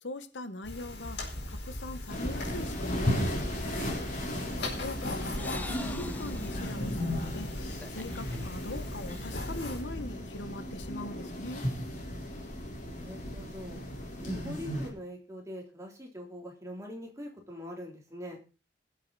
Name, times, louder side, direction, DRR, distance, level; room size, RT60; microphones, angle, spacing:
voice 1, 0.0-3.4 4.8-7.5 7.9-11.7, left 2 dB, 85° left, 11 dB, 1.2 m, -41 dB
sound 1, 0.6-9.8, left 1 dB, 70° left, 4.7 m, -39 dB
sound 2, 2.1-14.9, equal, 45° left, 4.0 m, -35 dB
sound 3, 3.6-4.1 4.6-6.8 7.2-7.4 7.7-8.4, left 1 dB, 10° left, 0.9 m, -44 dB
voice 2, 4.3-4.9 12.9-13.8 14.2-18.4, equal, 15° right, 0 dB, 3.4 m, -43 dB
22.0 x 7.8 x 4.1 m, 0.35 s
head